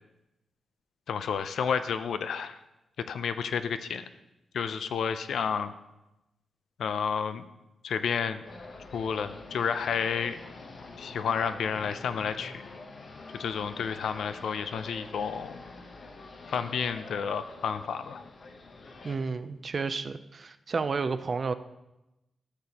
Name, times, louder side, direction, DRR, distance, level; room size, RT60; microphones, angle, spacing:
voice 1, 1.1-2.6 3.1-4.0 4.5-5.7 6.8-7.4 7.8-8.4 8.9-10.4 11.0-12.6 13.3-15.6 16.5-18.2, left 6 dB, 80° left, 11 dB, 0.5 m, -31 dB
sound 1, 8.4-19.2, left 3 dB, 45° left, 0.8 m, -46 dB
voice 2, 19.0-21.5, right 4 dB, 35° right, 11 dB, 0.4 m, -31 dB
13.0 x 6.8 x 2.9 m, 0.95 s
wide cardioid pair, 145°, 0 cm